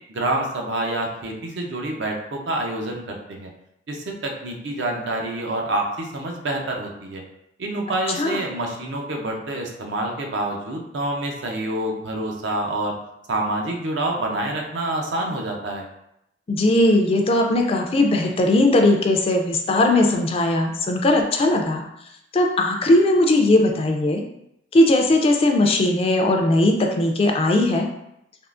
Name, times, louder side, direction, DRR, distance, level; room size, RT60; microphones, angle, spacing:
voice 1, 0.1-3.5 3.9-7.2 7.6-12.9 13.3-15.9, right 1 dB, 75° right, 1 dB, 0.6 m, -27 dB
voice 2, 16.5-21.8 22.3-24.2 24.7-27.9, left 1 dB, 30° left, 3 dB, 0.3 m, -18 dB
3.5 x 2.4 x 2.4 m, 0.81 s
head